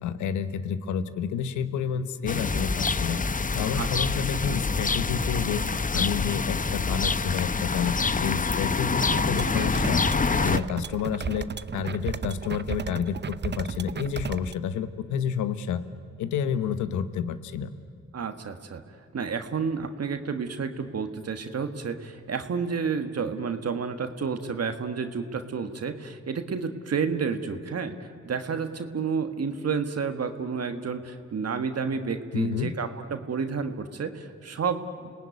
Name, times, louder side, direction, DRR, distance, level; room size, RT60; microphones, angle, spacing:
voice 1, 0.0-5.6 5.9-15.8 16.2-17.7 32.3-32.7, left 7 dB, 90° left, 12 dB, 1.0 m, -30 dB
sound 1, 2.3-10.6, left 4 dB, 30° left, 0.8 m, -26 dB
voice 2, 3.7-4.2 18.1-18.8 19.1-35.2, right 5 dB, 60° right, 7 dB, 1.6 m, -30 dB
sound 2, 9.0-14.5, right 6 dB, 35° right, 0.7 m, -34 dB
29.0 x 18.5 x 9.5 m, 2.3 s
supercardioid pair, 45°, 29 cm